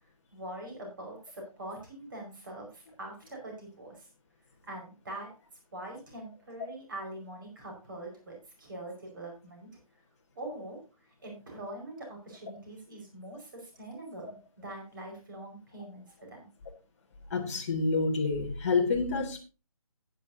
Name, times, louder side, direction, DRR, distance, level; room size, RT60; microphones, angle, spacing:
voice 1, 0.3-4.1 4.6-5.3 5.7-9.7 10.3-10.8 11.2-16.5, right 1 dB, 35° right, 4.8 m, -43 dB
voice 2, 17.3-19.4, left 4 dB, 25° left, 1.3 m, -28 dB
15.0 x 9.1 x 2.6 m
figure-of-eight pair, 155°, 19 cm